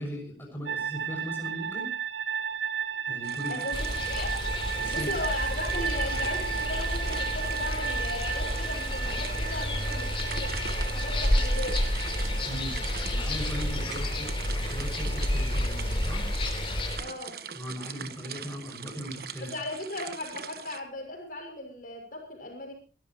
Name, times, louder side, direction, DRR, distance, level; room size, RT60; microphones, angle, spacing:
voice 1, 0.0-1.9 3.1-3.6 4.8-5.1 12.4-12.8 13.1-16.3 17.5-19.5, equal, 10° left, 0 dB, 6.4 m, -38 dB
sound 1, 0.7-16.4, right 7 dB, 80° right, 1.0 m, -35 dB
sound 2, 3.2-20.8, right 7 dB, 55° right, 1.3 m, -42 dB
voice 2, 3.5-4.4 4.8-10.7 10.9-11.8 17.0-17.4 19.4-22.7, left 2 dB, 50° left, 2 dB, 6.3 m, -37 dB
sound 3, 3.7-17.0, left 1 dB, 30° left, 3.7 m, -30 dB
26.5 x 13.5 x 3.0 m, 0.33 s
head